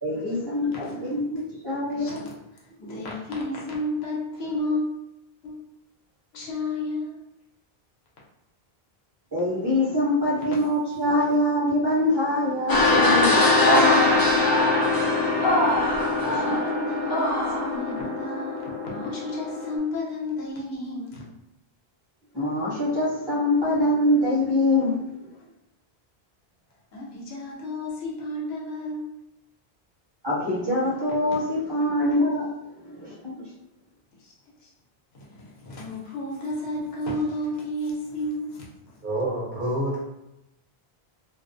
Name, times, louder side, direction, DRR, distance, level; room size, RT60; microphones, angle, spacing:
voice 1, 0.0-2.3 2.9-3.0 9.3-14.2 16.3-16.6 22.3-25.0 30.2-33.5, left 1 dB, 25° right, -7 dB, 0.8 m, -24 dB
voice 2, 1.9-2.3 2.8-4.8 5.4-5.6 6.3-7.2 16.4-21.2 26.9-29.1 34.2-34.3 34.6-34.7 35.1-38.7, left 1 dB, 80° left, -4 dB, 0.9 m, -32 dB
sound 1, 12.7-19.8, left 2 dB, 35° left, 0.4 m, -22 dB
voice 3, 39.0-40.0, right 1 dB, 55° right, -5 dB, 0.9 m, -27 dB
2.4 x 2.1 x 2.5 m, 0.86 s
omnidirectional pair, 1.0 m